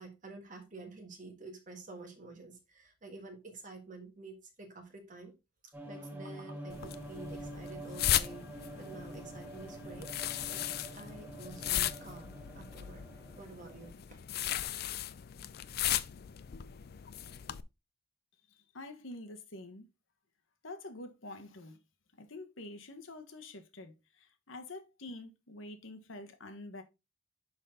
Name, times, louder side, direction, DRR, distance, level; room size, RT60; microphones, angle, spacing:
voice 1, 0.0-5.3 5.6-10.1 10.5-10.7 10.9-13.0 13.4-14.2, right 3 dB, 40° right, 1.6 m, -49 dB
sound 1, 5.7-13.9, right 1 dB, 10° right, 1.3 m, -47 dB
sound 2, 6.7-17.6, left 12 dB, 50° left, 0.4 m, -37 dB
voice 2, 18.5-19.9 20.6-21.8 22.2-26.8, left 2 dB, 70° left, 1.2 m, -47 dB
6.3 x 5.6 x 3.6 m
head